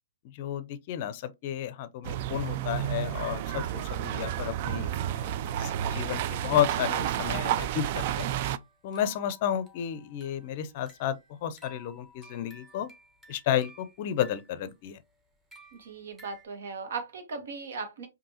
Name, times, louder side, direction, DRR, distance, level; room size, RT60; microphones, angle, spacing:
voice 1, 0.2-8.3 8.8-12.9 13.3-15.0, left 10 dB, 45° left, 0.5 m, -32 dB
sound 1, 2.0-8.6, right 11 dB, 45° right, 0.3 m, -31 dB
sound 2, 6.4-16.5, equal, 10° right, 1.1 m, -56 dB
voice 2, 15.7-18.1, right 4 dB, 70° right, 1.3 m, -38 dB
5.3 x 2.6 x 2.8 m
hypercardioid pair, 135°, 0 cm